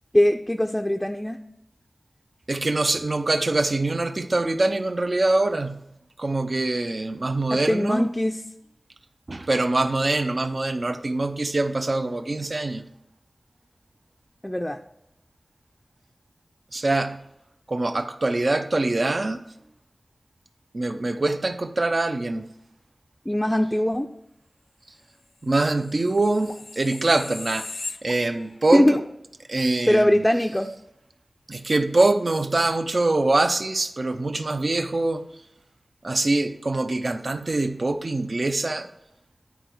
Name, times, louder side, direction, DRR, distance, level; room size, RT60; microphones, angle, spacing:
voice 1, 0.1-1.4 7.5-8.4 14.4-14.8 23.3-24.1 28.7-29.0 29.9-30.7, left 1 dB, 15° left, 4 dB, 0.4 m, -21 dB
voice 2, 2.5-5.8 6.2-8.1 9.3-12.9 16.7-17.2 17.7-19.4 20.7-22.4 25.4-27.7 28.0-29.0 29.5-30.2 31.5-35.3 36.0-38.9, right 2 dB, 55° right, 9 dB, 0.5 m, -24 dB
sound 1, 25.7-28.6 29.0-29.1, left 3 dB, 80° left, 0.5 m, -38 dB
10.0 x 4.6 x 4.5 m, 0.79 s
wide cardioid pair, 55°, 0 cm